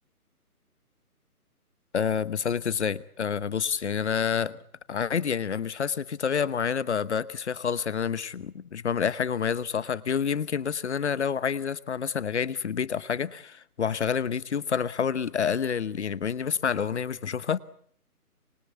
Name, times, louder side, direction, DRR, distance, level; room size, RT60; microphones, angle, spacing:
voice 1, 1.9-4.6 4.9-17.6, left 7 dB, 45° left, 18 dB, 1.1 m, -28 dB
25.5 x 22.0 x 8.2 m, 0.62 s
hypercardioid pair, 160°, 45 cm